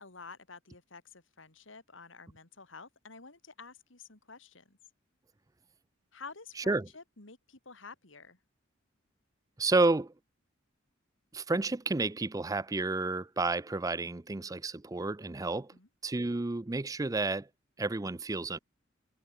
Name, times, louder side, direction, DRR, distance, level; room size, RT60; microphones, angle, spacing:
voice 1, 0.0-4.8 6.1-8.4 15.7-15.9, left 4 dB, 70° left, 2.8 m, -50 dB
voice 2, 9.6-10.1 11.3-15.7 16.0-17.5 17.8-18.6, right 3 dB, 15° right, 0.5 m, -30 dB
head